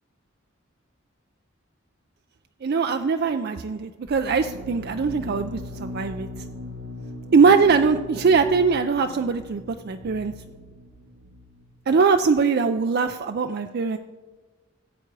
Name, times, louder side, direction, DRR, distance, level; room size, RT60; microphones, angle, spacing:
voice 1, 2.6-6.3 7.3-10.3 11.9-14.0, right 5 dB, 55° right, 7 dB, 0.4 m, -21 dB
sound 1, 4.1-11.7, left 1 dB, 80° right, 1.0 m, -39 dB
16.0 x 7.9 x 4.7 m, 1.3 s
head